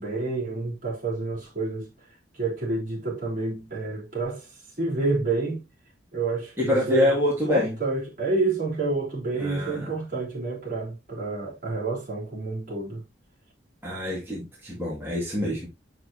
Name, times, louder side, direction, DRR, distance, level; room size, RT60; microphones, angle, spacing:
voice 1, 0.0-1.9 2.3-4.5 4.8-5.6 6.1-7.1 7.5-13.0, right 3 dB, 45° right, 4.0 m, -29 dB
voice 2, 6.6-7.8 9.4-9.9 13.8-15.7, left 1 dB, 15° right, 2.2 m, -25 dB
7.2 x 6.4 x 2.8 m
head